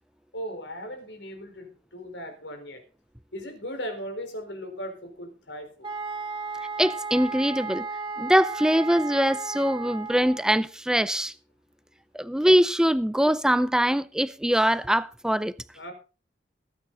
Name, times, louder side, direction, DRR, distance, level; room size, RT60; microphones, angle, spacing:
voice 1, 0.3-2.8 3.3-5.9 15.7-15.9, equal, 85° left, 4.3 m, -37 dB
sound 1, 5.8-10.5, right 4 dB, 30° right, 1.8 m, -34 dB
voice 2, 6.8-7.8 8.2-11.3 12.1-15.5, equal, 5° right, 0.5 m, -23 dB
19.0 x 9.2 x 4.0 m
head